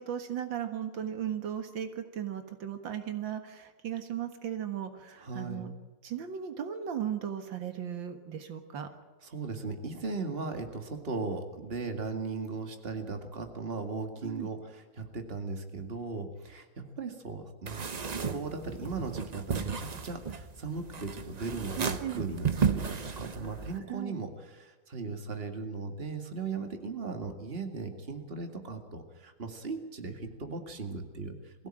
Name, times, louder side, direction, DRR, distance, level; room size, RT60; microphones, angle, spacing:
voice 1, 0.0-5.7 6.0-8.9 14.2-14.5 21.8-22.2 23.9-24.1, right 9 dB, 90° right, 8 dB, 2.3 m, -36 dB
voice 2, 5.2-5.7 9.2-31.7, right 4 dB, 30° right, 6 dB, 2.3 m, -38 dB
sound 1, 17.7-23.8, right 6 dB, 50° right, 0.4 m, -34 dB
22.0 x 16.0 x 8.9 m, 1.3 s
omnidirectional pair, 2.0 m